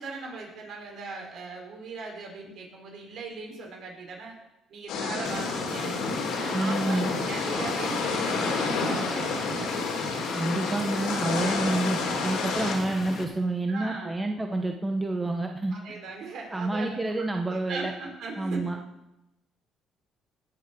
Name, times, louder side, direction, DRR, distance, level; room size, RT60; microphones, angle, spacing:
voice 1, 0.0-4.4 4.7-6.0 6.3-9.7 11.2-11.4 13.7-14.1 15.7-17.0 17.5-18.6, right 3 dB, 65° right, 0 dB, 4.8 m, -39 dB
sound 1, 4.9-12.7, left 4 dB, 80° left, 3.8 m, -29 dB
sound 2, 5.2-13.2, left 4 dB, 50° left, 2.7 m, -39 dB
voice 2, 6.5-7.1 10.3-15.7 16.5-17.9 18.4-18.8, right 2 dB, 15° right, 3 dB, 1.3 m, -28 dB
18.5 x 6.6 x 7.1 m, 0.91 s
cardioid pair, 95°, 0 cm